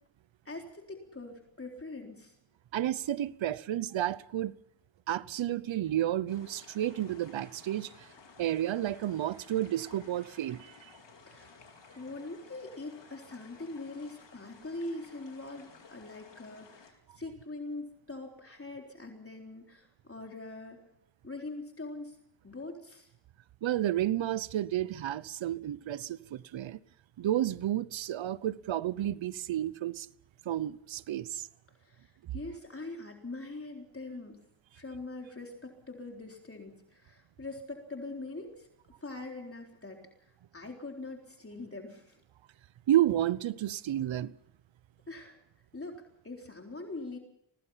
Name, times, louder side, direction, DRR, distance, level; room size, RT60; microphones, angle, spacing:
voice 1, 0.5-2.3 11.3-11.5 11.9-20.8 21.2-22.2 22.4-23.1 31.8-34.4 34.7-38.7 39.0-40.0 40.5-42.2 45.1-45.4 45.7-47.2, left 2 dB, 30° left, 3.9 m, -43 dB
voice 2, 2.7-4.5 5.1-8.1 8.4-10.9 23.6-26.8 27.2-30.1 30.5-31.5 32.2-32.3 42.9-44.4, right 12 dB, 85° right, 0.9 m, -31 dB
sound 1, 6.3-16.9, left 5 dB, 70° left, 4.6 m, -56 dB
25.5 x 19.5 x 5.7 m
cardioid pair, 55°, 45 cm